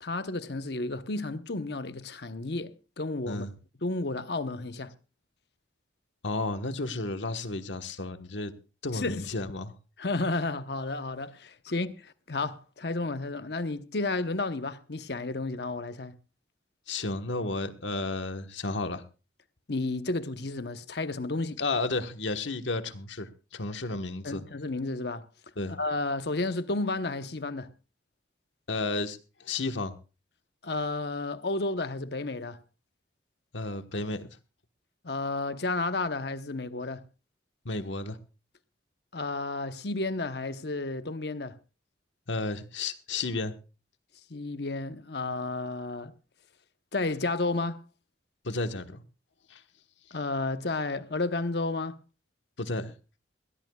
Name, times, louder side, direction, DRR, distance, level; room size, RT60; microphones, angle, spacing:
voice 1, 0.0-3.5 3.8-4.9 8.9-9.3 10.0-16.2 19.7-21.6 24.2-25.3 25.7-27.7 30.6-32.6 35.0-37.0 39.1-41.6 44.3-46.1 46.9-47.8 50.1-52.0, left 2 dB, 60° left, 1.0 m, -32 dB
voice 2, 6.2-8.5 8.8-9.7 16.9-19.0 21.6-24.4 25.6-25.8 28.7-29.9 33.5-34.3 37.6-38.2 42.3-43.5 48.4-49.0 49.5-49.6 52.6-52.9, left 2 dB, 80° left, 1.3 m, -32 dB
22.0 x 16.0 x 2.3 m
head